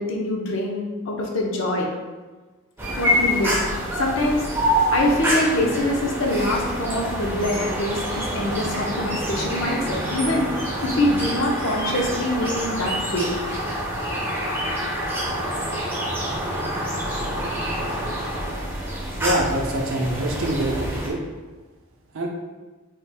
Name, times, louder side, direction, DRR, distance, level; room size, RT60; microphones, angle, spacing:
voice 1, 0.0-1.9 3.0-3.6 4.0-4.5 4.9-10.5 10.8-13.3, left 1 dB, 60° left, -1 dB, 0.6 m, -24 dB
sound 1, 2.8-21.1, equal, 10° right, 0.5 m, -26 dB
voice 2, 19.2-21.2 22.1-22.3, right 1 dB, 70° right, 0 dB, 0.5 m, -25 dB
3.2 x 2.4 x 3.4 m, 1.3 s
head